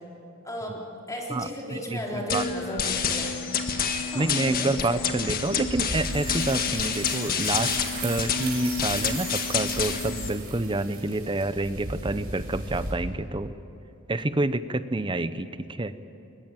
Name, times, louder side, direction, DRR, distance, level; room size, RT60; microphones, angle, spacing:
voice 1, 0.4-3.5 4.1-5.0, equal, 15° left, -2 dB, 3.8 m, -35 dB
voice 2, 1.3-2.4 4.1-13.5 14.1-15.9, right 2 dB, 20° right, 12 dB, 0.8 m, -28 dB
sound 1, 2.3-10.3, left 6 dB, 40° left, 1.7 m, -28 dB
sound 2, 5.5-12.9, right 2 dB, 45° right, 5.6 m, -37 dB
22.0 x 22.0 x 9.1 m, 2.8 s
head